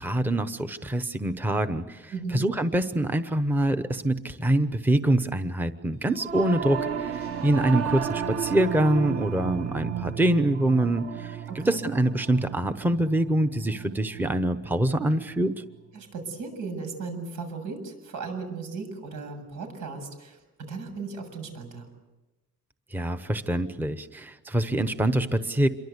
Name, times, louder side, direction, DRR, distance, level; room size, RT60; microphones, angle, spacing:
voice 1, 0.0-15.6 22.9-25.7, right 1 dB, 5° right, 10 dB, 0.9 m, -25 dB
voice 2, 2.1-2.4 11.5-11.8 15.9-21.9, right 4 dB, 85° right, 6 dB, 7.6 m, -36 dB
Singing / Musical instrument, 6.1-15.7, right 8 dB, 45° right, 1.7 m, -34 dB
27.5 x 23.5 x 8.2 m, 1.1 s
cardioid pair, 160°, 30 cm